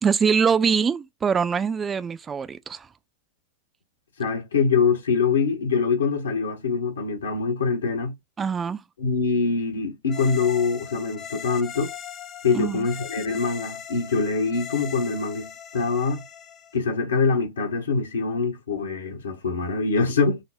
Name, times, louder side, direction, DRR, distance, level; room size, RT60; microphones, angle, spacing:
voice 1, 0.0-2.9 8.4-8.8 12.5-12.9, right 6 dB, 20° right, 0.3 m, -23 dB
voice 2, 4.2-8.1 9.0-11.9 12.4-16.2 16.7-20.4, left 4 dB, 70° left, 1.0 m, -24 dB
sound 1, 10.1-16.8, left 8 dB, 30° left, 0.7 m, -39 dB
4.0 x 2.0 x 2.5 m
figure-of-eight pair, 90°, 0 cm